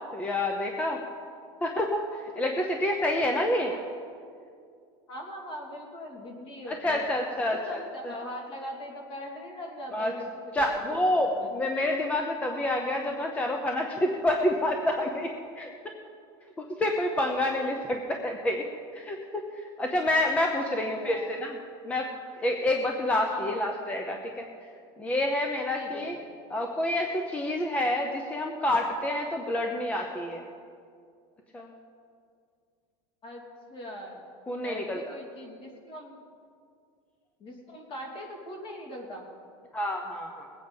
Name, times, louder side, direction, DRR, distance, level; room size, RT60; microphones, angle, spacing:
voice 1, 0.1-1.0 1.6-3.7 6.7-7.8 8.0-8.1 9.9-10.1 10.5-15.3 15.6-15.7 16.6-18.6 18.9-21.6 21.8-22.1 22.4-24.4 25.0-26.2 26.5-30.4 31.5-31.7 34.5-35.0 39.7-40.5, left 1 dB, 10° left, 2 dB, 0.7 m, -28 dB
voice 2, 5.1-7.1 7.4-11.5 20.6-21.3 23.3-23.6 25.7-26.0 33.2-33.4 33.7-34.2 34.6-36.2 37.4-39.3, equal, 45° left, 0 dB, 2.8 m, -41 dB
20.5 x 8.5 x 5.3 m, 2.3 s
cardioid pair, 160°, 12 cm